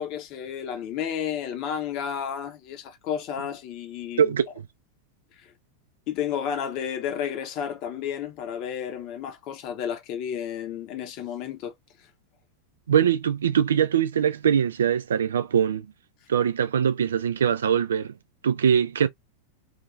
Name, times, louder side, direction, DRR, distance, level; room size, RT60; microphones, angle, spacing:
voice 1, 0.0-4.3 6.1-11.7, left 8 dB, 40° left, 0.9 m, -32 dB
voice 2, 12.9-15.9 16.3-18.1 18.4-19.1, right 8 dB, 65° right, 0.4 m, -22 dB
2.9 x 2.7 x 2.5 m
figure-of-eight pair, 90°, 0 cm